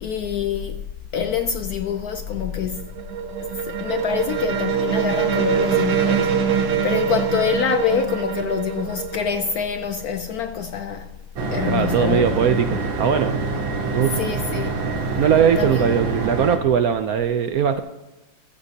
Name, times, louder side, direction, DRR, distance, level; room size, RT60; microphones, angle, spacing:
voice 1, 0.0-0.8 1.1-2.8 3.7-6.3 6.8-11.1 11.5-12.4 14.1-14.8 15.6-16.0, left 7 dB, 70° left, 0.9 m, -25 dB
sound 1, 2.4-10.2, right 7 dB, 50° right, 1.1 m, -24 dB
sound 2, 11.4-16.6, right 3 dB, 85° right, 2.0 m, -26 dB
voice 2, 11.6-13.4 13.9-14.2 15.2-17.8, right 8 dB, 70° right, 0.9 m, -20 dB
15.0 x 14.0 x 2.8 m
omnidirectional pair, 2.1 m